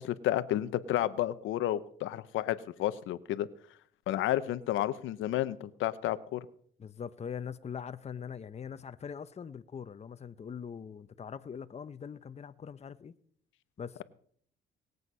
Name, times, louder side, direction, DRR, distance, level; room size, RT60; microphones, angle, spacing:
voice 1, 0.0-3.5 4.1-6.4, left 13 dB, 85° left, 0.7 m, -31 dB
voice 2, 6.8-13.2 13.8-14.0, left 7 dB, 35° left, 0.7 m, -42 dB
20.0 x 8.0 x 5.5 m
cardioid pair, 90°, 20 cm